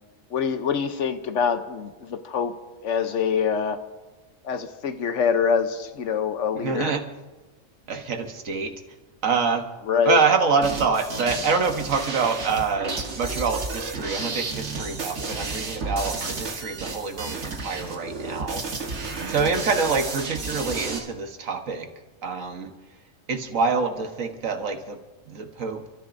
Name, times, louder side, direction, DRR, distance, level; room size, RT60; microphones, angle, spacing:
voice 1, 0.3-2.5 2.8-3.8 4.4-6.9 9.9-10.2, left 7 dB, 70° left, 9 dB, 1.1 m, -25 dB
voice 2, 6.5-7.0 7.9-8.7 9.2-9.7 10.0-18.8 19.3-21.9 22.2-22.7 23.3-25.0 25.3-25.8, right 5 dB, 85° right, 5 dB, 1.6 m, -26 dB
sound 1, 10.6-21.0, right 3 dB, 60° right, 1.7 m, -32 dB
29.5 x 13.0 x 2.6 m, 1.2 s
omnidirectional pair, 1.3 m